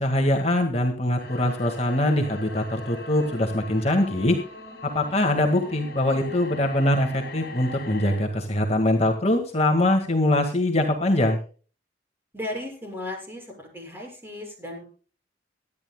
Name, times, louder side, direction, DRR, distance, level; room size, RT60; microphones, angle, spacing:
voice 1, 0.0-4.4 4.8-11.4, left 1 dB, 35° left, 3 dB, 1.8 m, -23 dB
sound 1, 1.2-8.2, left 2 dB, 50° left, 7.2 m, -41 dB
voice 2, 12.3-14.8, left 1 dB, 10° right, 1 dB, 6.3 m, -35 dB
24.0 x 10.5 x 2.3 m, 0.38 s
head